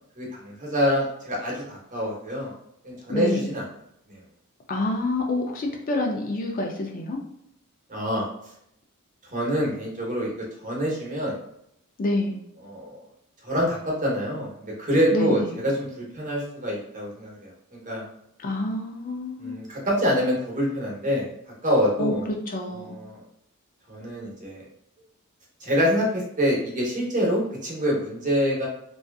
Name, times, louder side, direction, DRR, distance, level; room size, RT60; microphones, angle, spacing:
voice 1, 0.2-2.5 2.8-3.6 4.1-4.2 7.9-8.3 9.3-11.4 12.6-13.0 13.4-18.0 19.4-21.3 21.6-22.2 22.7-23.2 23.9-24.6 25.6-28.7, equal, 35° right, -3 dB, 0.8 m, -26 dB
voice 2, 3.1-3.5 4.7-7.2 12.0-12.4 15.1-15.6 18.4-19.6 22.0-23.0, left 2 dB, 40° left, 1 dB, 0.4 m, -27 dB
2.6 x 2.3 x 2.3 m, 0.75 s
head